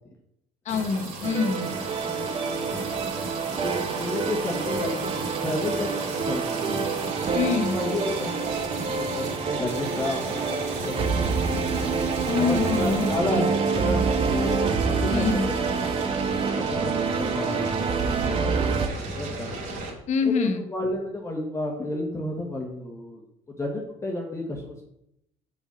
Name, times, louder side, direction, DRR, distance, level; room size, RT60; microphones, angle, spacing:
voice 1, 0.7-1.7 7.3-7.8 12.3-13.5 15.1-15.5 20.1-20.6, left 5 dB, 55° left, 8 dB, 1.0 m, -25 dB
sound 1, 0.7-19.9, right 2 dB, 65° right, 2.8 m, -34 dB
sound 2, 1.2-18.9, right 5 dB, 40° right, 0.9 m, -27 dB
voice 2, 2.0-2.9 3.5-6.9 7.7-11.6 12.3-14.6 15.0-15.5 16.7-19.5 20.2-23.2 23.6-24.8, left 1 dB, 20° left, 0 dB, 1.5 m, -32 dB
5.8 x 5.5 x 5.8 m, 0.79 s
cardioid pair, 100°, 15 cm